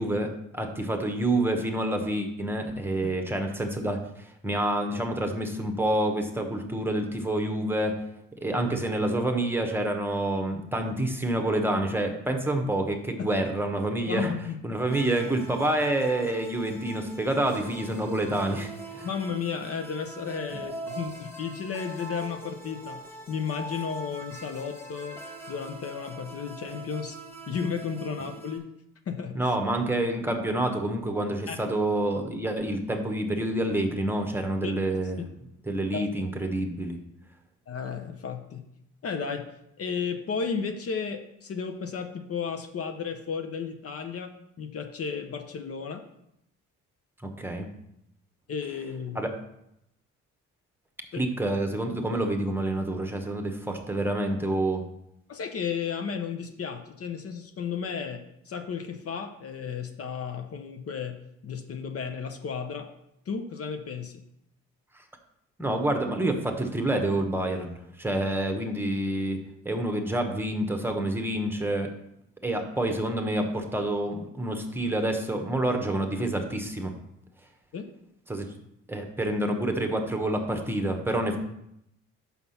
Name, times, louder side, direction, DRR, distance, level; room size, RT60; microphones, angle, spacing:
voice 1, 0.0-8.0 8.4-14.3 14.6-19.1 29.3-35.2 35.7-37.0 47.2-47.7 49.1-49.3 51.2-54.8 65.6-69.4 69.6-71.9 72.4-76.9 78.3-78.5 78.9-81.4, right 1 dB, 5° right, 4 dB, 1.1 m, -28 dB
voice 2, 14.1-14.6 19.0-25.2 25.5-27.2 27.5-28.7 29.1-29.6 31.5-31.6 34.6-34.7 35.2-35.4 35.9-36.1 37.7-38.7 39.0-44.3 44.6-46.0 48.5-49.2 51.1-51.2 55.3-62.9 63.3-64.2 77.7-77.9, left 6 dB, 50° left, 7 dB, 0.8 m, -33 dB
sound 1, 14.9-28.6, right 2 dB, 10° left, 1.5 m, -42 dB
5.9 x 5.7 x 5.7 m, 0.79 s
cardioid pair, 90°, 30 cm